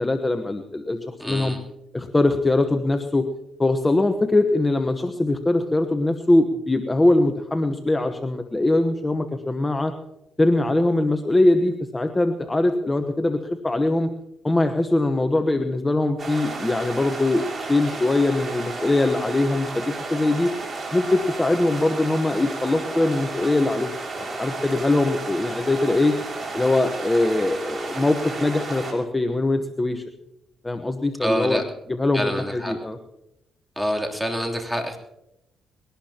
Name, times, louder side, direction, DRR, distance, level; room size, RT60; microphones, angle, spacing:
voice 1, 0.0-1.6 1.9-3.3 3.6-9.9 10.4-14.1 14.4-20.5 20.9-26.2 26.5-30.0 30.6-31.6 31.9-33.0, left 2 dB, 15° left, 6 dB, 1.1 m, -22 dB
voice 2, 1.2-1.6 31.2-31.6 32.1-32.7 33.8-35.0, equal, 5° right, 1 dB, 3.2 m, -26 dB
sound 1, 16.2-28.9, right 3 dB, 35° right, 6.1 m, -33 dB
22.0 x 18.5 x 2.9 m, 0.87 s
cardioid pair, 90°, 0 cm